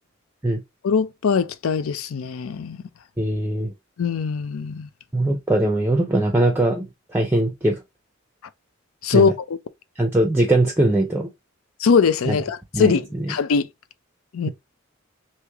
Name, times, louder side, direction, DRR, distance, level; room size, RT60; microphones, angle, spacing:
voice 1, 0.8-2.8 4.0-4.9 9.0-9.6 11.8-13.0 13.3-13.7 14.3-14.5, left 5 dB, 85° left, 0.4 m, -21 dB
voice 2, 3.2-3.7 5.1-7.8 9.1-9.3 10.0-11.3 12.3-12.4 12.7-13.3, right 1 dB, 10° right, 0.5 m, -21 dB
3.1 x 2.9 x 3.4 m
head